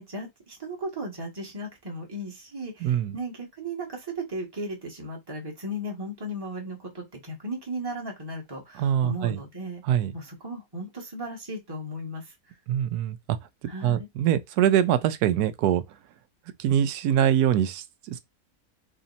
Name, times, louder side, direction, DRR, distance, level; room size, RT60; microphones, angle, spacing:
voice 1, 0.0-9.8 10.1-12.3 13.7-14.1, right 1 dB, 15° right, 1.1 m, -36 dB
voice 2, 2.8-3.2 8.8-9.4 9.8-10.1 12.7-13.4 13.8-15.8 16.6-18.2, right 10 dB, 85° right, 1.1 m, -23 dB
3.3 x 2.8 x 4.0 m
omnidirectional pair, 1.6 m